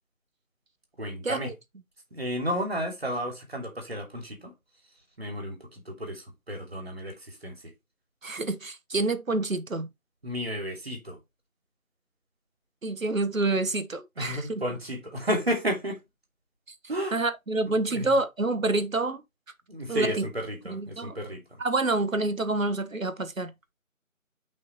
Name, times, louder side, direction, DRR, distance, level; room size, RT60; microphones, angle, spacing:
voice 1, 1.0-1.5 2.1-4.5 5.2-7.6 10.2-11.2 14.2-16.0 16.9-17.2 17.7-18.2 19.7-21.6, equal, 45° right, 2.9 m, -32 dB
voice 2, 8.2-9.9 12.8-14.4 17.1-19.2 19.9-20.3 20.7-21.1 21.6-23.7, right 2 dB, 70° right, 1.2 m, -27 dB
7.8 x 5.6 x 3.0 m
figure-of-eight pair, 170°, 42 cm